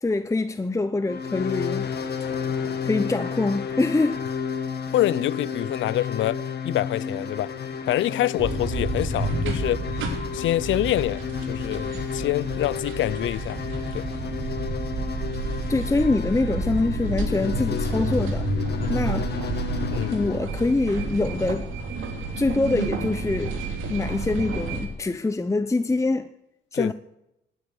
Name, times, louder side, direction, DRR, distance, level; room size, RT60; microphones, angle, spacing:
voice 1, 0.0-1.9 2.8-4.2 15.7-18.5 18.9-19.3 20.1-21.7 22.4-23.6 23.9-26.3 26.7-26.9, left 3 dB, 15° left, 0.8 m, -24 dB
sound 1, 1.1-20.4, left 7 dB, 55° left, 2.0 m, -32 dB
voice 2, 4.9-7.5 7.9-9.8 10.3-11.2 11.5-13.6 13.9-14.0 19.9-20.2 26.7-26.9, left 14 dB, 75° left, 0.6 m, -26 dB
sound 2, 8.4-24.9, right 3 dB, 80° right, 3.0 m, -30 dB
17.0 x 9.9 x 8.2 m
cardioid pair, 90°, 20 cm